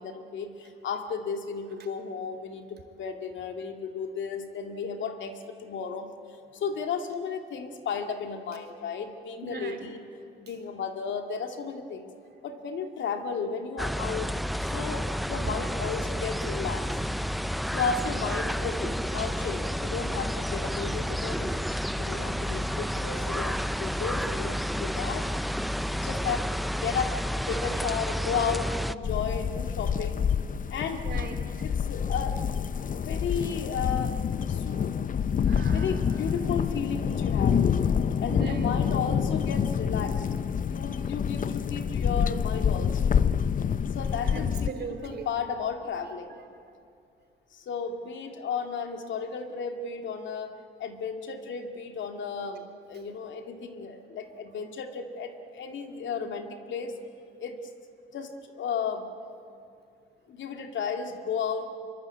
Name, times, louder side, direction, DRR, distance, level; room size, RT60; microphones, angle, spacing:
voice 1, 0.0-6.1 6.5-10.0 10.4-12.1 12.4-14.3 14.6-16.9 17.7-21.6 22.0-25.3 25.8-27.1 27.5-30.2 30.7-31.0 31.6-32.4 32.9-34.1 34.5-35.1 35.7-37.6 38.2-40.4 40.6-43.1 43.9-46.4 47.5-50.5 50.8-57.0 57.4-57.6 58.1-59.1 60.3-61.7, left 6 dB, 70° left, 5 dB, 2.3 m, -34 dB
voice 2, 9.4-9.9 17.3-17.7 27.5-27.7 31.0-31.6 35.4-36.0 38.3-38.7 44.2-45.3, right 5 dB, 55° right, 5 dB, 3.4 m, -40 dB
sound 1, 13.8-28.9, equal, ahead, 0.6 m, -30 dB
sound 2, 29.0-44.7, left 7 dB, 40° left, 0.7 m, -27 dB
25.5 x 23.0 x 8.5 m, 2.5 s
cardioid pair, 90°, 20 cm